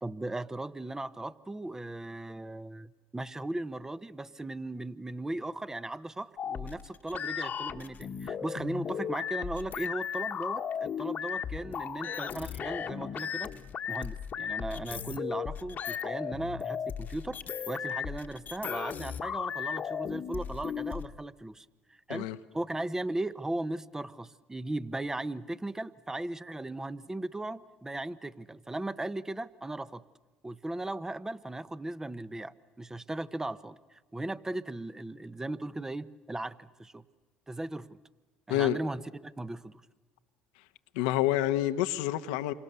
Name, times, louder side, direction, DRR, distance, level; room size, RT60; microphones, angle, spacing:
voice 1, 0.0-13.5 13.9-17.4 17.7-30.0 30.4-37.0 37.5-38.0 38.5-39.8, right 2 dB, 15° right, 0.9 m, -37 dB
sound 1, 6.4-21.1, left 8 dB, 45° left, 1.3 m, -36 dB
voice 2, 40.9-42.5, left 13 dB, 80° left, 1.0 m, -28 dB
28.5 x 25.0 x 6.9 m
hypercardioid pair, 70°, 4 cm